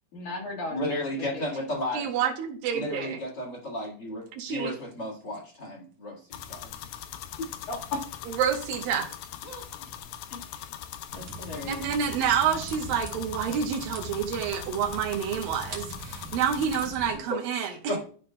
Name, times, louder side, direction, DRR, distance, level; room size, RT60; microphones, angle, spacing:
voice 1, 0.1-1.6 7.7-8.2 10.3-10.7 11.1-11.8, left 3 dB, 60° left, -3 dB, 3.0 m, -37 dB
voice 2, 0.7-2.1 2.7-6.7 7.4-7.5 9.4-9.7 17.3-17.4 17.9-18.0, left 1 dB, 35° left, -2 dB, 2.0 m, -33 dB
voice 3, 1.9-3.2 4.3-4.7 8.3-9.1 11.7-17.9, right 8 dB, 90° right, 5 dB, 2.8 m, -28 dB
sound 1, 6.3-16.9, left 10 dB, 90° left, 2.3 m, -41 dB
sound 2, 11.1-17.2, right 2 dB, 50° right, 2.4 m, -42 dB
13.0 x 5.3 x 2.2 m, 0.43 s
omnidirectional pair, 4.0 m